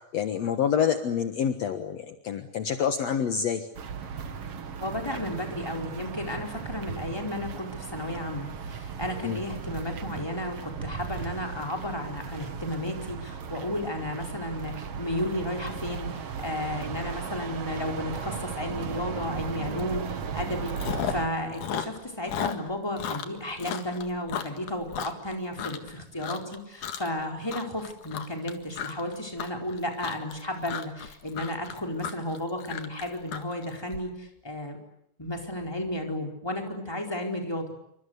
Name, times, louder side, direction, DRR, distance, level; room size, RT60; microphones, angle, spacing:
voice 1, 0.1-3.7 9.2-9.4, left 7 dB, 60° left, 7 dB, 2.4 m, -27 dB
sound 1, 3.8-21.3, right 6 dB, 55° right, 2.5 m, -36 dB
voice 2, 4.8-20.8 21.1-34.8 35.2-37.8, left 1 dB, 10° left, 2 dB, 4.5 m, -33 dB
Chewing mastication, 19.8-20.0 20.3-21.3 21.5-25.9 26.2-26.6 26.8-27.2 27.5-34.0, left 8 dB, 85° left, 3.3 m, -34 dB
28.0 x 26.0 x 8.2 m, 0.78 s
omnidirectional pair, 3.5 m